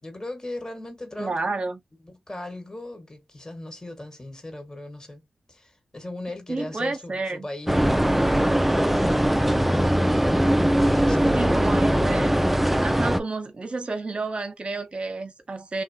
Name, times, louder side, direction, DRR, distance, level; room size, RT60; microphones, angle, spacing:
voice 1, 0.0-1.4 2.0-10.2 10.8-11.9, left 1 dB, 25° left, 1.6 m, -38 dB
voice 2, 1.2-1.8 6.5-7.5 11.3-12.3 12.8-15.8, right 3 dB, 45° right, 1.0 m, -30 dB
sound 1, 7.7-13.2, equal, 5° right, 0.4 m, -21 dB
2.9 x 2.2 x 2.8 m
cardioid pair, 45°, 3 cm